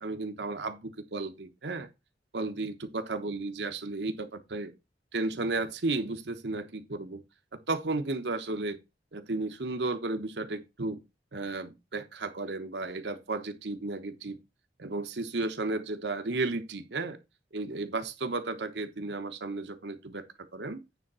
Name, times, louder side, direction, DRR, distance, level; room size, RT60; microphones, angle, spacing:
voice 1, 0.0-1.9 2.3-4.7 5.1-7.2 7.5-8.8 9.1-11.0 11.3-14.4 14.8-17.2 17.5-20.2 20.5-20.8, right 3 dB, 70° right, 1.1 m, -33 dB
9.4 x 3.6 x 5.5 m
head